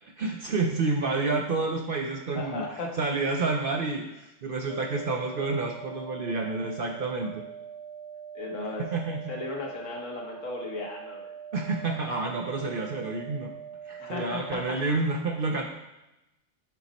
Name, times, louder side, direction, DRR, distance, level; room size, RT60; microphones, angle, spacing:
voice 1, 0.0-7.4 8.8-9.3 11.5-13.5 13.9-15.6, right 3 dB, 55° right, 2 dB, 0.7 m, -29 dB
voice 2, 2.3-3.0 8.3-8.8 9.3-11.3 14.0-14.8, left 3 dB, 70° left, 0 dB, 1.5 m, -36 dB
sound 1, 4.7-14.7, right 8 dB, 25° left, 0.9 m, -43 dB
9.2 x 4.1 x 4.1 m, 0.95 s
omnidirectional pair, 1.4 m